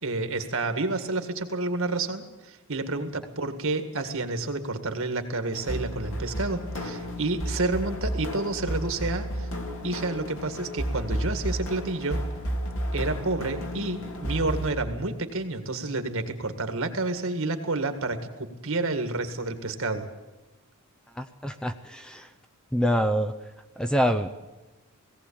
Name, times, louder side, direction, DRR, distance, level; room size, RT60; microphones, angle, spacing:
voice 1, 0.0-9.5 9.8-12.2 12.9-20.1, right 2 dB, 65° right, 7 dB, 1.9 m, -29 dB
sound 1, 5.5-14.7, equal, 60° left, 3.1 m, -32 dB
voice 2, 21.1-22.3 22.7-23.3 23.8-24.3, equal, 5° left, 8 dB, 0.7 m, -26 dB
18.0 x 17.0 x 8.6 m, 1.1 s
head